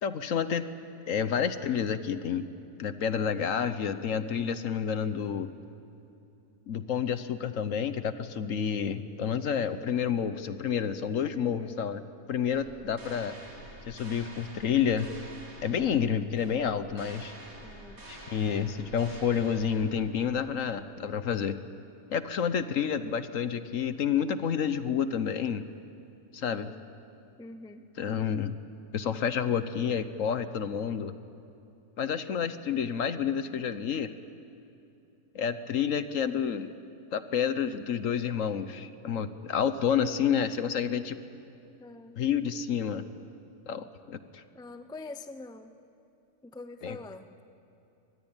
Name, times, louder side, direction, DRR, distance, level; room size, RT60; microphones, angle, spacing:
voice 1, 0.0-0.7 1.1-2.5 2.8-5.5 6.7-12.0 12.3-13.4 13.9-15.1 15.6-17.3 18.1-21.6 22.1-25.6 26.3-26.7 28.0-28.5 28.9-31.1 32.0-34.1 35.3-36.7 37.1-41.2 42.2-43.0 43.7-44.4 46.8-47.0, left 7 dB, 60° left, 12 dB, 1.2 m, -29 dB
voice 2, 11.3-11.8 17.6-18.0 26.4-26.9 27.4-27.9 41.8-42.2 44.5-45.7 46.4-47.3, left 2 dB, 5° left, 9 dB, 0.5 m, -44 dB
sound 1, 12.5-20.4, right 1 dB, 60° right, 5.6 m, -48 dB
24.5 x 20.5 x 8.9 m, 2.9 s
omnidirectional pair, 1.7 m